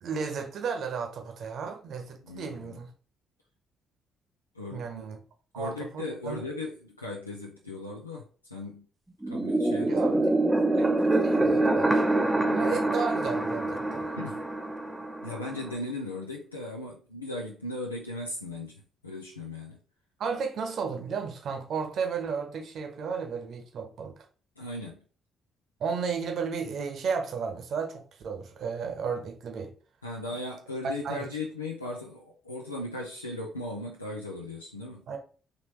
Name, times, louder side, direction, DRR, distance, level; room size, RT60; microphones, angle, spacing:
voice 1, 0.0-2.9 4.7-5.2 5.5-6.4 9.8-10.2 10.6-12.1 12.5-14.1 20.2-24.1 25.8-29.7 31.0-31.3 35.1-35.2, right 5 dB, 55° right, 0.9 m, -33 dB
voice 2, 2.2-2.8 4.5-5.0 5.5-8.9 9.3-10.2 12.7-12.8 14.2-14.4 15.2-19.8 24.6-25.0 30.0-35.0, left 2 dB, 85° left, 0.5 m, -37 dB
sound 1, 9.2-15.8, right 2 dB, 10° right, 0.7 m, -26 dB
3.9 x 3.2 x 3.1 m
figure-of-eight pair, 45°, 0 cm